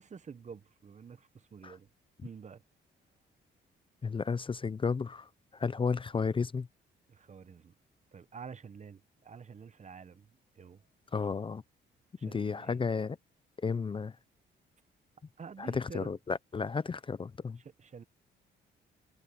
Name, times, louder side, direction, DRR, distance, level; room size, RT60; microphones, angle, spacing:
voice 1, 0.0-1.9 2.2-2.6 7.1-7.7 8.1-10.8 12.2-12.8 15.4-16.2 17.6-18.0, right 6 dB, 35° right, 1.1 m, -49 dB
voice 2, 4.0-6.7 11.1-11.6 12.2-13.2 13.6-14.1 15.6-17.6, left 5 dB, 25° left, 0.6 m, -33 dB
cardioid pair, 90°, 20 cm